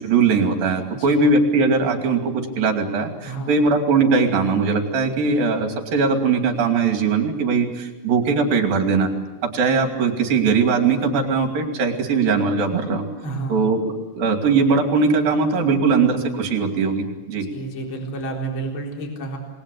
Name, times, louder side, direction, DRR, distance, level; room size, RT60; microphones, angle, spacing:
voice 1, 0.0-9.1 9.4-13.1 13.5-13.8 14.1-17.5, right 4 dB, 60° right, 5 dB, 4.2 m, -20 dB
voice 2, 3.2-3.6 13.2-13.6 17.4-19.4, right 3 dB, 30° left, 1 dB, 4.3 m, -30 dB
28.0 x 21.0 x 8.4 m, 1.1 s
omnidirectional pair, 5.0 m